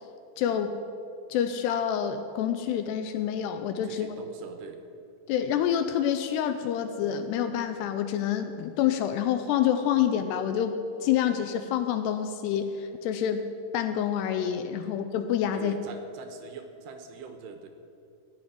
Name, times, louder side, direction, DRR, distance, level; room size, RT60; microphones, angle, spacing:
voice 1, 0.4-0.7 1.3-4.1 5.3-10.8 11.0-13.4 13.7-15.8, left 9 dB, 80° left, 8 dB, 2.5 m, -27 dB
voice 2, 3.8-4.8 14.8-15.0 15.5-17.7, right 5 dB, 75° right, 6 dB, 2.9 m, -43 dB
16.5 x 6.5 x 9.9 m, 2.6 s
omnidirectional pair, 5.2 m